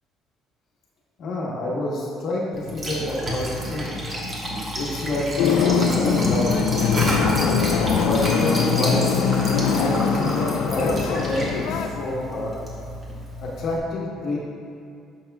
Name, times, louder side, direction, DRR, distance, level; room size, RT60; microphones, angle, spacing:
voice 1, 1.2-3.9 4.7-6.5 6.8-7.1 7.9-9.1 9.7-12.6 13.4-14.4, left 2 dB, 55° left, -4 dB, 1.2 m, -27 dB
Liquid, 2.5-13.8, equal, 25° right, 1.4 m, -30 dB
sound 1, 5.4-11.9, left 6 dB, 80° left, 0.4 m, -22 dB
10.5 x 5.8 x 2.3 m, 2.4 s
cardioid pair, 130°, 0 cm